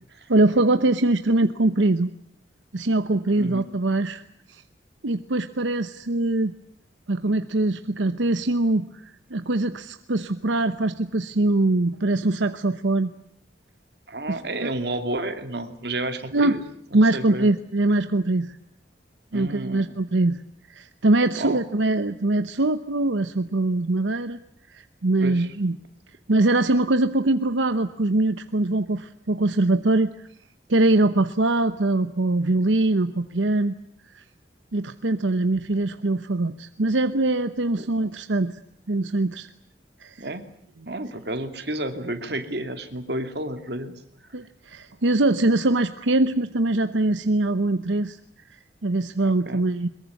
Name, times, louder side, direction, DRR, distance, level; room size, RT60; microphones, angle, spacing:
voice 1, 0.3-2.1 2.7-4.2 4.5-4.6 5.0-6.5 7.1-13.1 14.3-14.7 16.3-16.6 16.9-18.6 19.3-20.4 20.7-24.4 24.7-25.8 26.3-30.3 30.7-33.7 34.1-34.2 34.7-38.6 38.9-39.5 40.0-40.2 44.3-48.2 48.8-49.9, right 2 dB, 85° right, 10 dB, 0.9 m, -22 dB
voice 2, 14.1-16.6 16.9-17.5 19.3-19.9 21.4-21.6 25.2-25.5 37.8-38.1 40.2-40.5 40.9-43.9 49.2-49.6, right 1 dB, 60° right, 7 dB, 2.6 m, -31 dB
22.5 x 21.5 x 9.6 m, 0.69 s
head